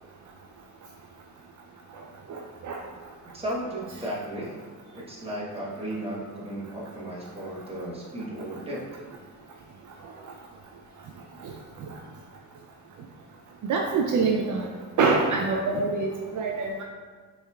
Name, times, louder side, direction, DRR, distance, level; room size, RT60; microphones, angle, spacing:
voice 1, 2.3-2.8 13.7-14.7 15.0-16.8, right 4 dB, 60° right, 1 dB, 0.5 m, -25 dB
voice 2, 3.3-4.6 4.9-9.0, right 1 dB, 15° right, -5 dB, 1.1 m, -35 dB
5.3 x 3.5 x 2.3 m, 1.5 s
cardioid pair, 85°, 35 cm